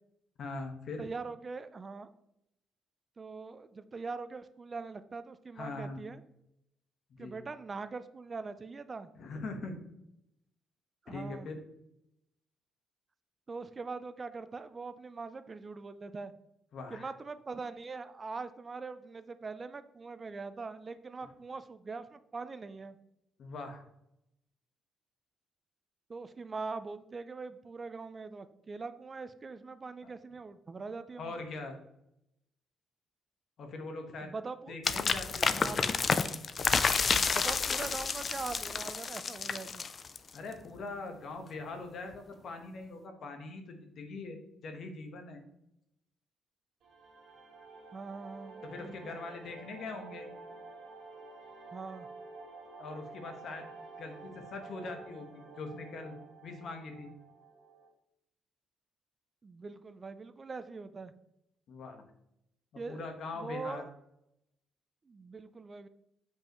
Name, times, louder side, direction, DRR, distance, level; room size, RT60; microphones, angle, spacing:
voice 1, 0.4-1.1 5.5-6.0 7.2-7.4 9.1-9.8 11.1-11.6 16.7-17.1 23.4-23.8 30.0-30.1 31.2-31.8 33.6-34.3 34.7-35.7 40.3-45.4 48.6-50.3 52.8-53.7 54.0-56.1 56.4-57.1 61.7-62.0 62.7-63.8, left 3 dB, 60° left, 5 dB, 1.3 m, -42 dB
voice 2, 1.0-2.1 3.2-6.2 7.2-9.1 11.1-11.5 13.5-16.3 16.9-23.0 26.1-31.3 34.2-34.7 35.5-35.8 37.3-39.8 47.9-49.2 51.7-52.1 59.4-61.1 62.8-63.1 63.4-63.9 65.1-65.9, right 4 dB, 30° right, 12 dB, 0.4 m, -42 dB
sound 1, 34.8-40.4, left 5 dB, 40° left, 0.4 m, -30 dB
sound 2, 46.8-57.9, right 3 dB, 65° right, 1.7 m, -50 dB
7.3 x 5.3 x 3.1 m, 0.81 s
cardioid pair, 110°, 0 cm